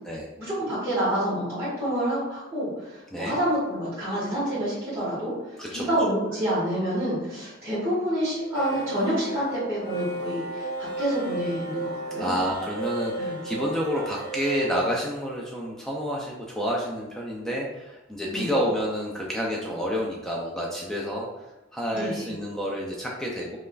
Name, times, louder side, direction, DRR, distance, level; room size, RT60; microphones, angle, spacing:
voice 1, 0.4-5.3 5.7-12.4 13.2-13.4 18.3-18.5 21.9-22.3, equal, 15° right, -14 dB, 1.3 m, -28 dB
sound 1, 8.4-14.9, right 2 dB, 50° left, 0.9 m, -34 dB
voice 2, 12.2-21.3 21.7-23.6, equal, 5° left, -3 dB, 0.4 m, -29 dB
5.2 x 2.4 x 2.3 m, 1.0 s
head